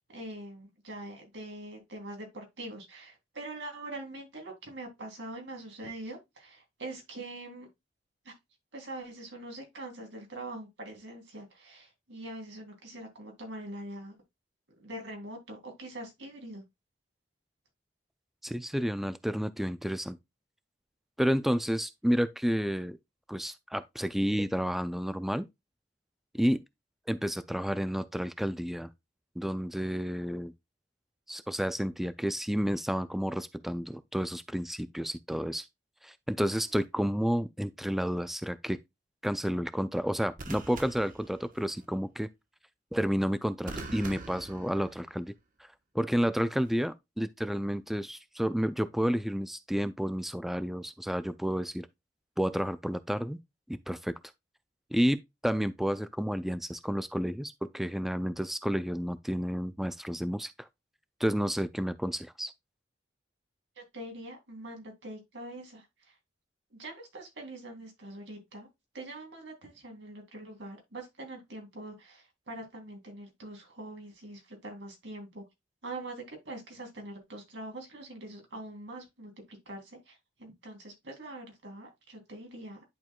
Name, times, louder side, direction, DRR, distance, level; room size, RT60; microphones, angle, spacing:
voice 1, 0.1-7.7 8.2-8.3 8.7-14.2 14.8-16.6 63.8-66.1 66.7-68.7 68.9-75.4 75.8-82.8, right 1 dB, 90° right, 3.0 m, -43 dB
voice 2, 18.4-20.2 21.2-23.0 23.3-25.5 26.3-26.6 27.1-28.9 29.4-30.5 31.3-35.7 36.0-38.8 39.2-42.3 42.9-45.3 45.6-51.9 52.4-53.4 53.7-54.1 54.9-60.7 61.2-62.5, equal, ahead, 0.3 m, -31 dB
sound 1, 36.5-36.9 40.4-41.9 43.7-45.3 46.5-46.9, right 2 dB, 50° right, 1.1 m, -45 dB
10.5 x 4.6 x 2.2 m
head